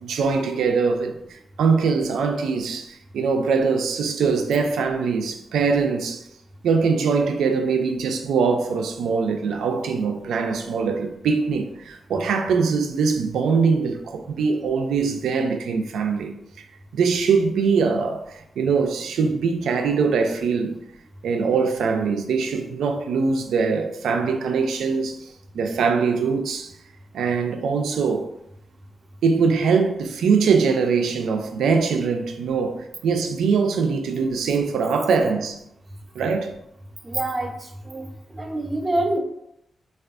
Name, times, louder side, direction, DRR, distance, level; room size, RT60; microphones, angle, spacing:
voice 1, 0.0-6.2 6.6-16.7 16.9-20.8 21.2-26.7 27.1-28.3 29.2-35.6 36.2-36.5, right 5 dB, 85° right, 0.3 m, -22 dB
voice 2, 37.0-37.5 37.9-38.0 38.3-39.2, right 1 dB, 35° right, 0.6 m, -25 dB
3.3 x 2.3 x 2.4 m
cardioid pair, 50°, 0 cm